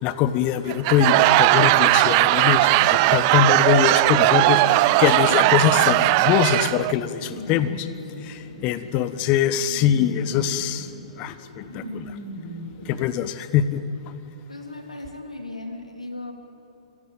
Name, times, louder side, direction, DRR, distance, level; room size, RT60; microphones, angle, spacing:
voice 1, 0.0-7.9 8.2-10.9 11.2-12.2 12.8-13.8, left 10 dB, 35° left, 13 dB, 1.3 m, -23 dB
Laughter / Crowd, 0.7-6.9, right 19 dB, 40° right, 0.5 m, -18 dB
sound 1, 4.8-12.9, equal, 70° left, 6.3 m, -39 dB
voice 2, 14.5-16.3, left 2 dB, 90° left, 4 dB, 3.0 m, -36 dB
27.0 x 16.5 x 9.2 m, 2.8 s
figure-of-eight pair, 115°, 3 cm